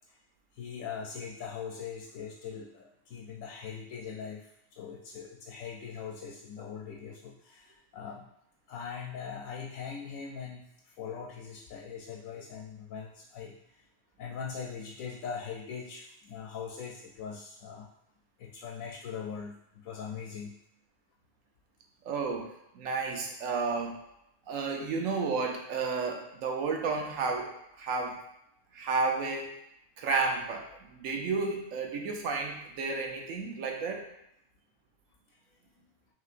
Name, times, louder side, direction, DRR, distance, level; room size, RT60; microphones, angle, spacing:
voice 1, 0.5-8.3 8.7-13.8 14.2-17.9 18.4-20.6, left 6 dB, 90° left, -1 dB, 1.0 m, -41 dB
voice 2, 22.0-24.0 24.5-28.2 28.7-29.5 30.0-34.1, right 4 dB, 85° right, 2 dB, 1.1 m, -32 dB
5.7 x 2.9 x 2.5 m, 0.80 s
omnidirectional pair, 1.3 m